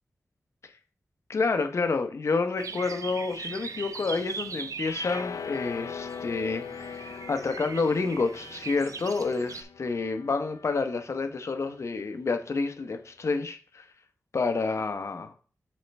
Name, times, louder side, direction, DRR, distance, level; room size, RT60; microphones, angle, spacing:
voice 1, 1.3-13.9 14.3-15.3, left 4 dB, 60° left, 6 dB, 0.8 m, -29 dB
sound 1, 2.6-9.6, right 5 dB, 85° right, 0.5 m, -40 dB
sound 2, 4.8-11.1, left 6 dB, 85° left, 0.3 m, -41 dB
7.5 x 4.1 x 3.3 m, 0.40 s
wide cardioid pair, 90°, 6 cm